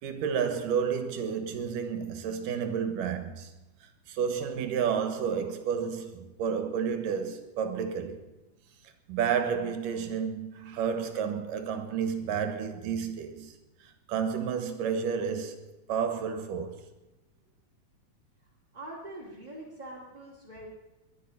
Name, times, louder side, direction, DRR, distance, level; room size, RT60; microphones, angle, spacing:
voice 1, 0.0-3.5 3.8-8.2 9.1-16.8, right 7 dB, 70° right, 2.7 m, -31 dB
voice 2, 18.7-20.7, right 1 dB, 15° right, 1.8 m, -43 dB
21.5 x 10.5 x 5.7 m
omnidirectional pair, 4.3 m